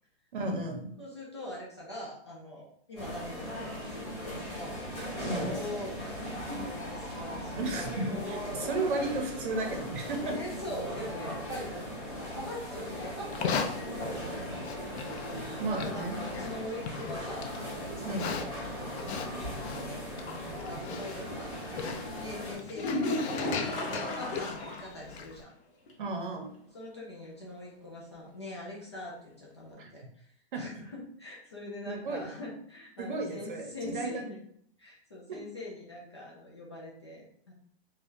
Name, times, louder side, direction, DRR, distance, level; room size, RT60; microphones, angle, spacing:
voice 1, 0.3-0.9 5.3-5.6 7.6-10.3 15.6-16.2 18.0-18.3 26.0-26.5 29.8-29.9 30.5-30.6 31.9-32.2 33.0-33.7 33.9-34.2 35.3-35.4, right 2 dB, 55° right, 3 dB, 0.7 m, -33 dB
voice 2, 1.0-4.8 5.1-8.0 8.8-9.1 10.2-14.9 15.7-25.5 26.7-34.4 34.8-37.5, left 1 dB, 30° left, -4 dB, 0.3 m, -43 dB
sound 1, 3.0-22.6, equal, 5° left, 0.8 m, -38 dB
Livestock farm animals working animals, 13.2-25.4, left 6 dB, 85° left, 0.5 m, -39 dB
sound 2, 22.7-25.0 25.3-25.4 25.9-26.0 29.7-29.8, left 1 dB, 60° left, 0.9 m, -33 dB
3.5 x 2.3 x 2.6 m, 0.66 s
hypercardioid pair, 175°, 32 cm